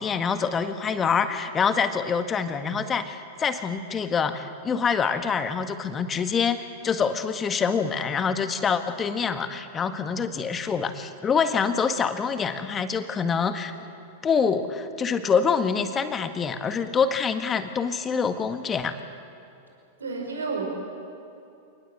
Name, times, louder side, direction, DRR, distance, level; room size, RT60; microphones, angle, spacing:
voice 1, 0.0-13.7 14.2-19.0, left 6 dB, 25° left, 8 dB, 1.7 m, -25 dB
voice 2, 20.0-20.6, right 4 dB, 80° right, 0 dB, 5.6 m, -30 dB
26.5 x 20.0 x 7.9 m, 2.7 s
figure-of-eight pair, 95°, 0 cm